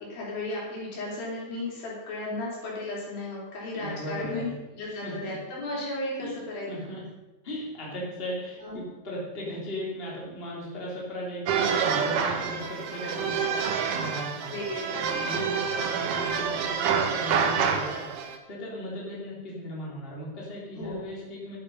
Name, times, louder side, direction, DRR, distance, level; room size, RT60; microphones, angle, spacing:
voice 1, 0.0-6.7 8.6-8.8 11.5-11.8 14.5-14.9 15.3-15.6 20.8-21.1, left 2 dB, 75° left, -4 dB, 5.4 m, -35 dB
voice 2, 3.7-4.5 5.0-5.4 6.2-6.4 6.7-7.0 7.4-14.6 14.9-21.6, equal, 15° left, -4 dB, 3.2 m, -37 dB
sound 1, 11.5-18.4, right 6 dB, 70° right, 2.5 m, -27 dB
11.0 x 10.5 x 5.5 m, 1.1 s
omnidirectional pair, 4.2 m